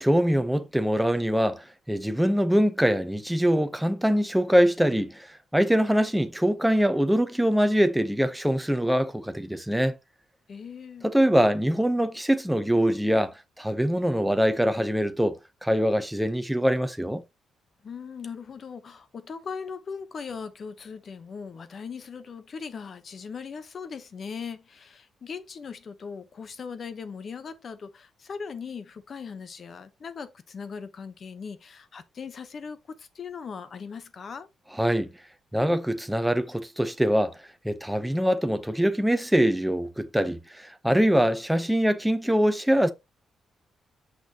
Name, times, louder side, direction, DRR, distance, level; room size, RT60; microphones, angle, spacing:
voice 1, 0.0-5.3 5.5-10.0 11.0-17.2 34.8-35.1 35.5-37.3 37.6-42.9, equal, 5° right, 0.9 m, -23 dB
voice 2, 10.5-11.1 17.8-34.5, left 6 dB, 50° left, 1.1 m, -39 dB
6.4 x 6.0 x 3.0 m
cardioid pair, 110°, 0 cm